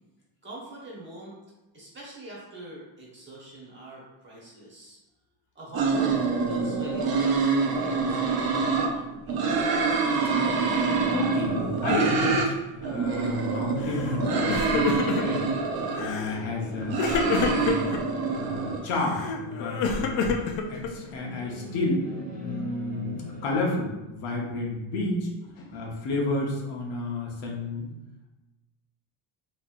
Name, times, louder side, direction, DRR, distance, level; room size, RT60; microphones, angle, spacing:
voice 1, 0.4-1.4 1.7-5.0 5.5-8.5 8.9-9.8, right 1 dB, 25° right, -5 dB, 1.1 m, -43 dB
sound 1, 5.7-8.9 9.3-12.5 12.8-16.1 16.6-18.8, right 4 dB, 50° right, 0.6 m, -26 dB
sound 2, 10.1-23.6, equal, 20° left, 0.5 m, -44 dB
voice 2, 11.1-15.5 16.0-17.9 18.3-20.3 20.7-22.1 22.4-25.3 25.6-27.9, left 2 dB, 85° left, -1 dB, 1.0 m, -31 dB
Crying sobbing, 13.8-14.2 14.4-15.5 16.0-16.4 17.0-18.0 18.9-21.1, left 4 dB, 65° left, 0.6 m, -28 dB
4.2 x 3.1 x 2.4 m, 1.0 s
cardioid pair, 165°, 49 cm